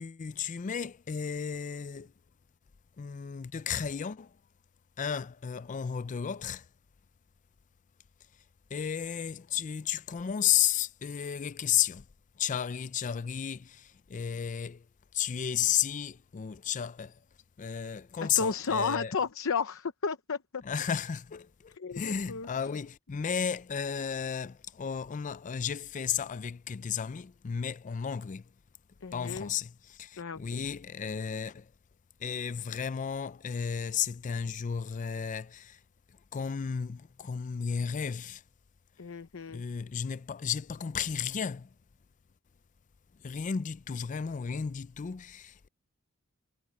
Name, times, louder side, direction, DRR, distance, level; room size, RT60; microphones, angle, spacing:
voice 1, 0.0-2.1 3.0-4.4 5.0-6.7 8.7-12.1 12.4-14.9 15.1-17.2 17.6-19.2 20.6-28.5 29.1-31.7 32.2-35.8 36.1-38.4 39.5-41.7 43.2-45.7, left 8 dB, 35° left, 0.4 m, -33 dB
voice 2, 18.2-20.6 21.8-22.5 29.0-29.5 30.2-30.6 39.0-39.6, left 5 dB, 65° left, 0.8 m, -33 dB
head